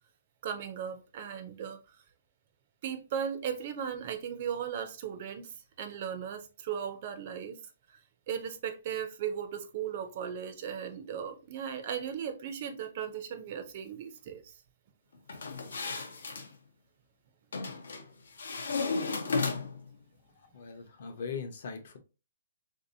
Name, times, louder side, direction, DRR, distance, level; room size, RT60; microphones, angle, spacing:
voice 1, 0.4-1.8 2.8-7.6 7.9-8.0 8.3-14.5, right 8 dB, 30° right, 0.4 m, -37 dB
sound 1, 15.3-16.5 17.5-18.0 18.4-19.9, left 4 dB, 85° left, 0.8 m, -33 dB
voice 2, 20.5-22.0, left 6 dB, 40° left, 0.6 m, -40 dB
3.6 x 2.6 x 2.6 m
hypercardioid pair, 180°, 0 cm